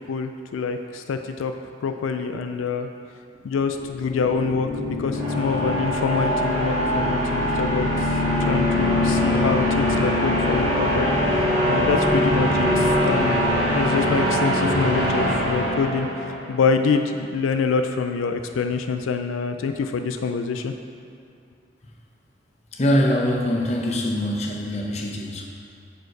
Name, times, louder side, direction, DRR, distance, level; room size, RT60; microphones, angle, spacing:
voice 1, 0.1-1.5 1.8-2.9 3.4-7.9 8.5-11.2 11.7-16.1 16.5-20.7, left 5 dB, 90° left, 7 dB, 0.3 m, -25 dB
sound 1, 3.7-16.5, left 1 dB, 35° right, 1.3 m, -22 dB
voice 2, 22.7-25.4, equal, 35° left, 0 dB, 0.7 m, -23 dB
6.4 x 5.1 x 4.6 m, 2.4 s
head